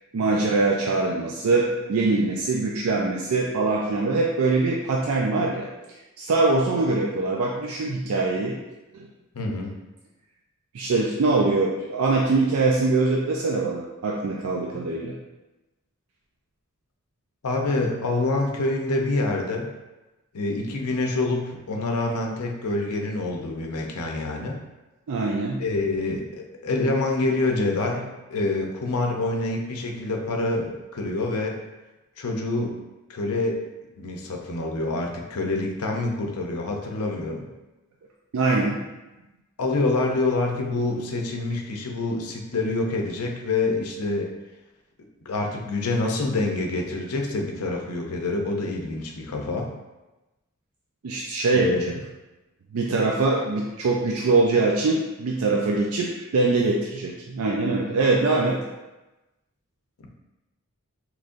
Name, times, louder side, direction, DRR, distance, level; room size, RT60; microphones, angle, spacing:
voice 1, 0.1-5.7 6.2-8.6 8.9-9.1 10.7-15.2 25.1-25.6 38.3-38.8 51.0-51.9 52.7-58.6, right 3 dB, 75° right, -2 dB, 0.4 m, -23 dB
voice 2, 9.3-9.8 17.4-19.7 20.3-24.6 25.6-31.6 32.2-32.8 33.1-33.6 34.0-37.5 39.6-44.3 45.3-49.7 51.5-51.8, left 2 dB, 85° left, 2 dB, 0.6 m, -26 dB
3.7 x 3.0 x 2.5 m, 1.1 s
head